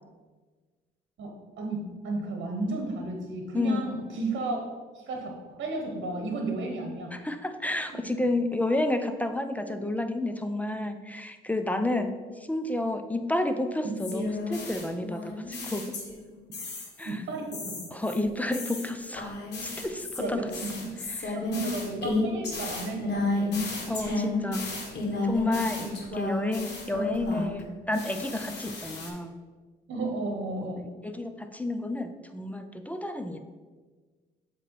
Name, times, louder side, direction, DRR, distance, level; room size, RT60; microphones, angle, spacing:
voice 1, 1.2-4.7 4.9-7.2 7.9-8.0 13.8-13.9 17.0-18.0 19.8-21.0 21.3-24.2 25.8-25.9 29.9-30.8, right 2 dB, 65° right, 1 dB, 1.1 m, -34 dB
voice 2, 3.5-3.9 7.2-12.1 12.5-16.0 17.0-17.2 17.9-20.4 21.2-21.4 23.9-24.7 25.2-29.3 31.0-33.4, left 2 dB, 5° left, 7 dB, 0.4 m, -30 dB
sound 1, 14.0-16.3 16.5-17.1 17.5-27.6 27.9-29.1, left 2 dB, 60° left, 1.5 m, -32 dB
7.7 x 3.1 x 4.5 m, 1.4 s
cardioid pair, 90°, 20 cm